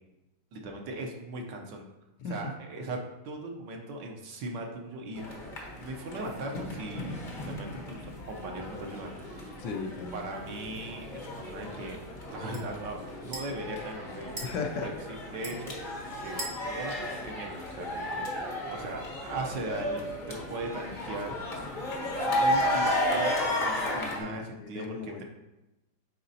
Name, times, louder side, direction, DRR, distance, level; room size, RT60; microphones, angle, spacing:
voice 1, 0.5-1.8 2.3-3.0 3.2-9.6 10.1-12.0 12.3-14.3 14.8-15.8 16.2-16.4 16.6-21.3 22.2-25.2, right 2 dB, 70° right, 2 dB, 1.4 m, -39 dB
sound 1, 5.2-24.2, left 1 dB, 40° left, 0.8 m, -34 dB
voice 2, 9.6-10.3 14.4-14.9 24.1-25.2, left 5 dB, 70° left, 3 dB, 1.2 m, -36 dB
sound 2, 10.3-18.1, right 2 dB, 40° right, 0.9 m, -47 dB
9.4 x 3.9 x 2.7 m, 0.95 s
omnidirectional pair, 2.1 m